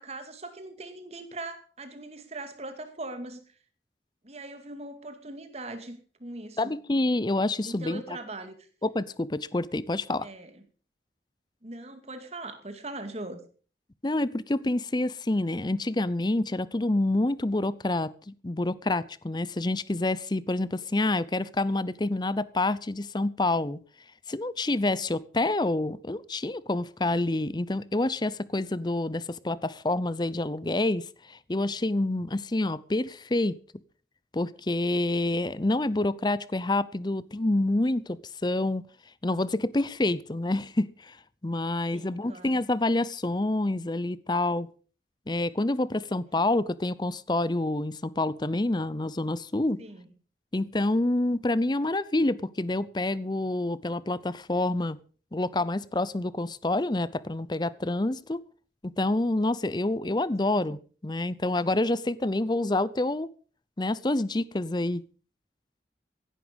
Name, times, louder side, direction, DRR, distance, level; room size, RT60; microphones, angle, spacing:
voice 1, 0.0-3.4 4.2-6.7 7.6-8.6 10.2-10.5 11.6-13.4 41.9-42.6 49.8-50.1 60.5-60.7, right 2 dB, 35° right, 2.3 m, -40 dB
voice 2, 6.6-8.2 8.8-10.3 14.0-23.8 24.3-33.5 34.3-38.8 39.2-41.2 41.4-44.7 45.3-49.8 50.5-55.0 55.3-58.4 58.8-60.8 61.0-63.3 63.8-65.0, left 2 dB, 25° left, 0.7 m, -27 dB
16.0 x 11.0 x 5.4 m
head